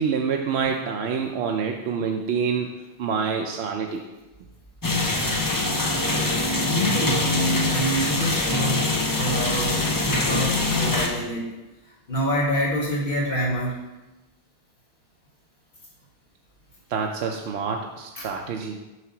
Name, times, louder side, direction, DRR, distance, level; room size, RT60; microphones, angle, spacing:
voice 1, 0.0-4.0 16.9-18.8, right 6 dB, 75° right, 2 dB, 0.8 m, -27 dB
sound 1, 4.8-11.1, left 2 dB, 25° left, 0.6 m, -23 dB
voice 2, 6.4-7.3 7.7-8.9 9.2-11.5 12.1-13.8 18.2-18.3, right 1 dB, 55° left, -3 dB, 1.7 m, -27 dB
7.9 x 2.8 x 5.8 m, 1.1 s
omnidirectional pair, 1.1 m